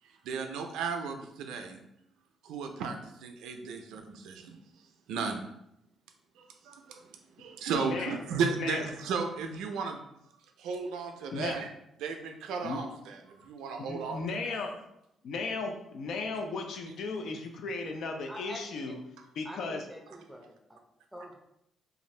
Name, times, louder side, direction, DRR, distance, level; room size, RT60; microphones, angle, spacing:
voice 1, 0.2-1.9 2.4-4.6 5.1-5.4 6.4-7.1 7.4-10.0 10.6-11.7 12.0-14.6, right 5 dB, 90° right, 5 dB, 0.3 m, -35 dB
voice 2, 7.8-8.2 8.6-8.8 11.3-11.6 12.6-12.8 13.8-14.7 15.2-19.0 19.4-19.8, left 3 dB, 70° left, 4 dB, 0.4 m, -35 dB
voice 3, 18.3-18.9 19.4-20.8 21.1-21.3, equal, 5° right, 2 dB, 0.6 m, -46 dB
2.5 x 2.4 x 3.1 m, 0.81 s
cardioid pair, 90°, 0 cm